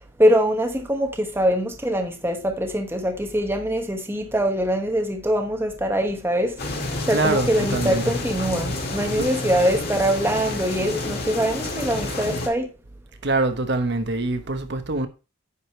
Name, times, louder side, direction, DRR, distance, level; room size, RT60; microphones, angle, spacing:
voice 1, 0.2-12.7, equal, 10° right, 1.0 m, -23 dB
sound 1, 6.6-12.5, left 2 dB, 50° left, 2.0 m, -29 dB
voice 2, 7.1-8.2 9.2-9.3 13.2-15.1, right 2 dB, 55° right, 1.1 m, -24 dB
9.8 x 5.0 x 4.4 m
head